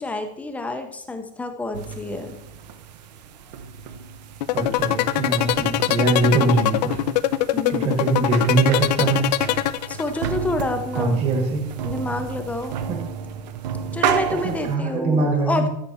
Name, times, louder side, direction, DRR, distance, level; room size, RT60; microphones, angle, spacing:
voice 1, 0.0-2.4 7.5-8.0 9.9-11.2 11.8-12.8 13.9-15.7, left 2 dB, 5° left, 6 dB, 0.6 m, -28 dB
sound 1, 1.7-14.8, right 8 dB, 80° right, 0.9 m, -32 dB
sound 2, 4.4-10.3, left 14 dB, 80° left, 0.6 m, -22 dB
voice 2, 4.5-6.9 7.7-9.3 10.9-11.6 12.9-13.0 14.3-15.7, right 3 dB, 30° right, 4 dB, 1.5 m, -22 dB
13.0 x 5.9 x 4.2 m, 0.78 s
supercardioid pair, 170°, 21 cm